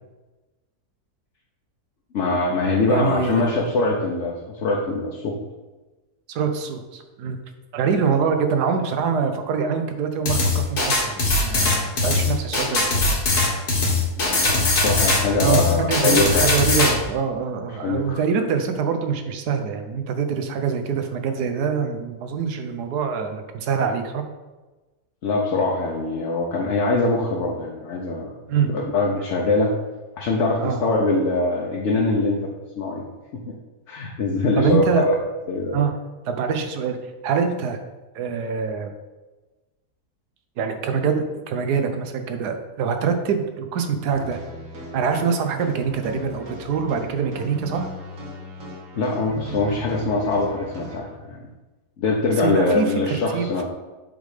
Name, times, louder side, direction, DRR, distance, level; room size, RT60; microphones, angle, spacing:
voice 1, 2.1-5.3 14.2-16.5 17.8-18.2 25.2-28.3 28.7-29.7 30.2-33.0 33.3-33.4 33.9-35.1 35.5-35.8 49.0-51.4 52.0-53.6, left 3 dB, 55° left, -2 dB, 1.0 m, -23 dB
voice 2, 2.9-3.6 6.3-7.4 7.7-13.2 15.4-24.2 28.5-28.7 30.6-30.8 34.6-35.1 35.7-35.9 36.3-37.0 37.2-37.8 38.1-38.9 40.6-44.4 44.9-47.9 52.4-53.6, right 6 dB, 90° right, 6 dB, 1.3 m, -24 dB
sound 1, 10.3-16.9, left 3 dB, 90° left, 2.4 m, -20 dB
sound 2, 44.1-51.0, equal, 55° right, 1.7 m, -38 dB
7.4 x 3.6 x 4.9 m, 1.2 s
omnidirectional pair, 1.7 m